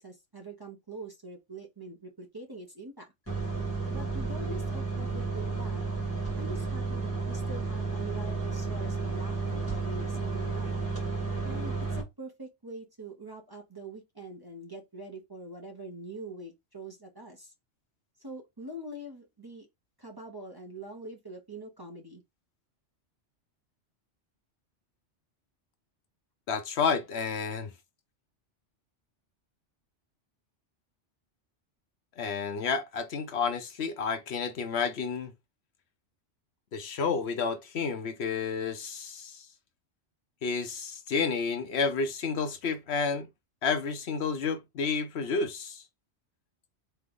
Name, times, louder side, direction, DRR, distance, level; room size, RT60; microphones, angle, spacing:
voice 1, 0.0-3.1 3.9-5.8 6.4-10.8 11.4-17.5 18.2-19.7 20.0-22.2, right 1 dB, 20° right, 0.8 m, -44 dB
sound 1, 3.3-12.0, right 4 dB, 10° left, 2.0 m, -32 dB
voice 2, 26.5-27.7 32.2-35.3 36.7-39.5 40.4-43.3 43.6-45.8, left 5 dB, 70° left, 0.9 m, -30 dB
3.7 x 3.4 x 3.6 m
omnidirectional pair, 1.2 m